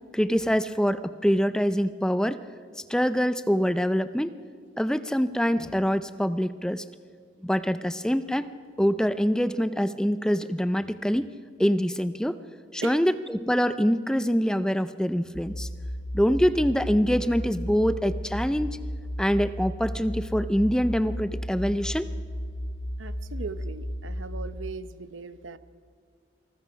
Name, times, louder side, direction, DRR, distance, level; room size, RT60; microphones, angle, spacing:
voice 1, 0.1-2.4 2.9-4.3 4.8-6.8 7.4-8.5 8.8-11.3 11.6-12.4 12.7-15.7 16.1-18.7 19.2-22.1, equal, 5° left, 12 dB, 0.5 m, -25 dB
sound 1, 15.3-24.6, equal, 60° left, 2.2 m, -34 dB
voice 2, 23.0-25.6, right 4 dB, 85° right, 13 dB, 0.9 m, -39 dB
27.0 x 19.5 x 5.8 m, 2.1 s
head